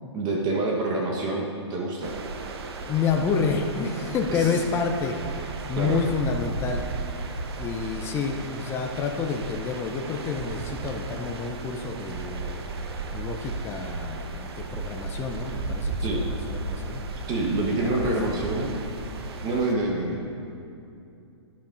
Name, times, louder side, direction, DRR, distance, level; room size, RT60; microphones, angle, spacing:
voice 1, 0.1-2.1 4.3-4.5 5.8-6.0 16.0-16.2 17.3-18.7 19.4-20.2, right 2 dB, 30° right, -2 dB, 1.1 m, -27 dB
sound 1, 2.0-19.7, right 3 dB, 60° right, 0.9 m, -34 dB
voice 2, 2.9-5.2 5.7-6.9 7.6-12.6 13.1-17.0 17.8-18.4, left 5 dB, 15° left, 2 dB, 0.5 m, -29 dB
11.5 x 10.5 x 2.6 m, 2.6 s
hypercardioid pair, 125°, 15 cm